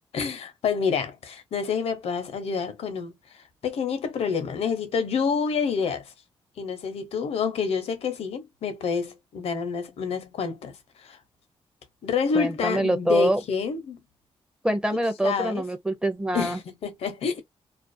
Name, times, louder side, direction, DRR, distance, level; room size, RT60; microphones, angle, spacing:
voice 1, 0.1-3.1 3.6-6.0 6.6-10.7 11.0-11.2 12.0-14.0 15.2-15.6 16.3-17.4, left 6 dB, 85° left, 0.7 m, -28 dB
voice 2, 12.3-13.4 14.6-16.6, right 1 dB, 10° right, 0.4 m, -25 dB
2.4 x 2.2 x 2.5 m
wide cardioid pair, 165°, 10 cm